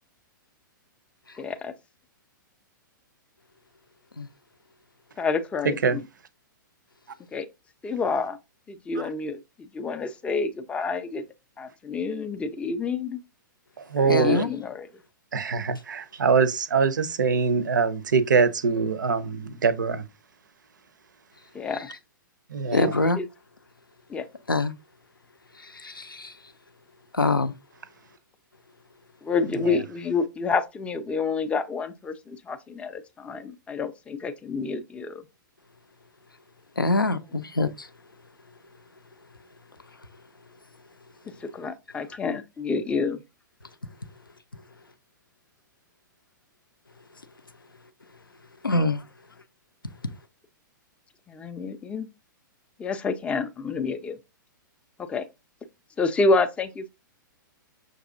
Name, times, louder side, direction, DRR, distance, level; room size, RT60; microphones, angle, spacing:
voice 1, 1.4-1.7 5.2-6.0 7.3-7.5 7.8-8.4 8.7-11.3 11.6-13.2 14.0-14.9 21.5-21.9 22.7-23.3 24.1-24.3 29.2-35.2 41.4-43.2 51.3-52.1 52.8-54.2 55.0-55.3 56.0-56.9, left 4 dB, 10° left, 0.4 m, -28 dB
voice 2, 5.6-6.0 13.8-14.4 15.3-20.1 22.5-23.0 29.6-29.8, right 5 dB, 65° right, 0.5 m, -23 dB
voice 3, 14.1-14.5 22.7-23.2 24.5-24.7 25.7-26.3 27.1-27.5 36.8-37.9 48.6-49.0, left 2 dB, 85° left, 0.5 m, -24 dB
6.1 x 2.6 x 2.5 m
figure-of-eight pair, 110°, 11 cm